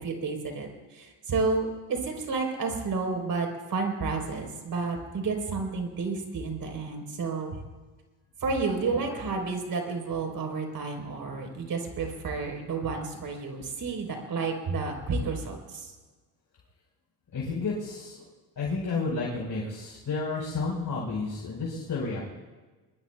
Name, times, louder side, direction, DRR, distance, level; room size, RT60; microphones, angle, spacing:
voice 1, 0.0-7.6 8.4-15.9, right 4 dB, 60° right, 3 dB, 3.9 m, -31 dB
voice 2, 17.3-18.3 18.6-22.2, left 3 dB, 55° left, -4 dB, 4.5 m, -31 dB
22.5 x 21.0 x 2.3 m, 1.3 s
supercardioid pair, 70°, 39 cm